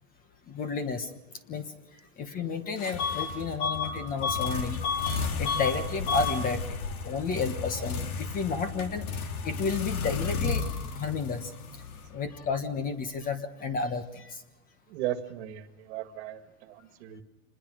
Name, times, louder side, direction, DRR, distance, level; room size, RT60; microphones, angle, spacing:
voice 1, 0.5-1.1 1.5-1.7 2.2-6.8 7.0-9.1 9.4-10.6 10.9-11.5 12.1-14.4, left 4 dB, 20° left, 12 dB, 1.2 m, -31 dB
sound 1, 2.8-12.5, left 5 dB, 75° left, 3.1 m, -34 dB
Bus / Alarm, 3.0-3.3 3.6-5.2 5.4-5.8 6.0-6.4, left 6 dB, 40° left, 3.6 m, -31 dB
voice 2, 14.9-17.2, right 12 dB, 50° right, 11 dB, 1.9 m, -36 dB
25.5 x 21.0 x 6.3 m, 1.0 s
supercardioid pair, 155°, 44 cm